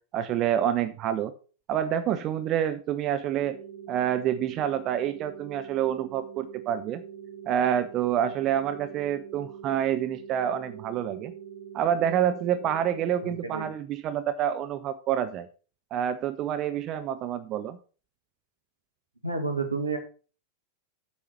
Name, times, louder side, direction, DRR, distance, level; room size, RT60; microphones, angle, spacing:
voice 1, 0.1-1.3 1.7-3.6 3.9-7.0 7.5-11.3 11.7-15.5 15.9-17.8, right 10 dB, 35° right, 12 dB, 0.6 m, -27 dB
sound 1, 3.4-13.4, right 8 dB, 55° right, 3.2 m, -43 dB
voice 2, 13.2-13.7 19.2-20.0, right 4 dB, 85° right, 4 dB, 1.9 m, -30 dB
8.4 x 7.2 x 4.3 m, 0.37 s
figure-of-eight pair, 90°, 0 cm